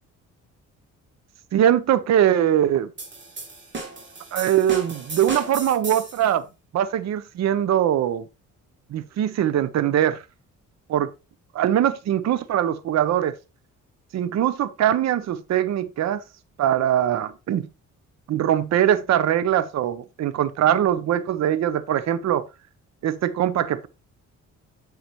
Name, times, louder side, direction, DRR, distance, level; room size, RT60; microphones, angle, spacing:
voice 1, 1.5-2.9 4.3-6.4 6.7-8.2 8.9-10.2 10.9-11.1 11.5-13.3 14.1-16.2 16.6-17.7 18.3-22.4 23.0-23.9, right 10 dB, 60° right, 0.8 m, -22 dB
sound 1, 3.0-6.3, right 3 dB, 40° right, 2.8 m, -34 dB
8.1 x 6.6 x 3.1 m
cardioid pair, 90°, 30 cm